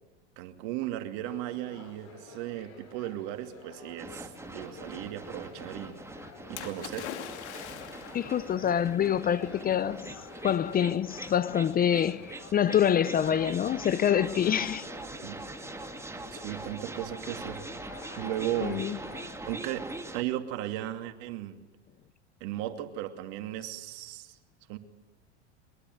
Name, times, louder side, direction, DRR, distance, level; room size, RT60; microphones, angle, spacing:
voice 1, 0.4-6.0 6.5-7.1 15.2-15.4 16.3-17.6 18.2-18.8 19.4-21.6 22.4-24.4 24.7-24.8, right 13 dB, 55° right, 2.6 m, -36 dB
sound 1, 1.2-19.3, left 4 dB, 50° left, 8.0 m, -50 dB
sound 2, 4.0-20.2, right 2 dB, 10° right, 2.3 m, -43 dB
Splash splatter, 6.6-8.4 9.3-9.4, left 10 dB, 70° left, 2.9 m, -41 dB
voice 2, 8.1-10.1 10.4-14.9 18.6-19.0, left 9 dB, 25° left, 0.7 m, -26 dB
23.0 x 22.5 x 8.0 m
hypercardioid pair, 90°, 34 cm